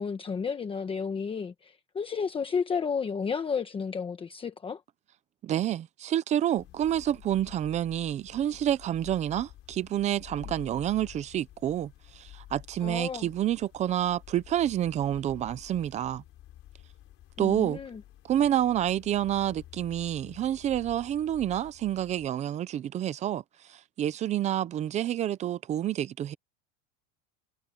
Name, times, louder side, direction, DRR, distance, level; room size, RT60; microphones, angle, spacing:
voice 1, 0.0-4.8 12.8-13.3 17.4-18.0, left 6 dB, 15° left, 1.1 m, -32 dB
voice 2, 5.4-16.2 17.4-17.8 18.3-23.4 23.7-26.3, right 11 dB, 20° right, 0.4 m, -28 dB
sound 1, 6.6-22.3, left 13 dB, 35° left, 4.3 m, -50 dB
cardioid pair, 165°, 37 cm